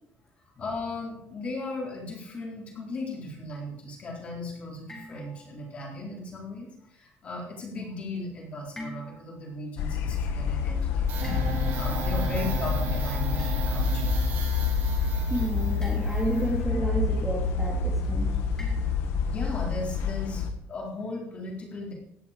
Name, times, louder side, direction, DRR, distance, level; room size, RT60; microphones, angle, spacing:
voice 1, 0.6-11.1 11.7-14.1 19.3-21.9, left 2 dB, 30° left, -1 dB, 4.1 m, -37 dB
sound 1, 4.9-5.8 8.8-9.5 11.2-12.0 13.4-13.9 15.8-16.4 18.6-19.3, left 1 dB, 15° left, 3.4 m, -45 dB
sound 2, 9.8-20.5, left 5 dB, 70° left, 1.6 m, -28 dB
sound 3, 11.1-19.5, equal, 55° right, 4.0 m, -33 dB
voice 2, 15.3-18.4, right 1 dB, 5° right, -2 dB, 2.2 m, -31 dB
17.0 x 11.0 x 5.2 m, 0.78 s
cardioid pair, 175°, 4 cm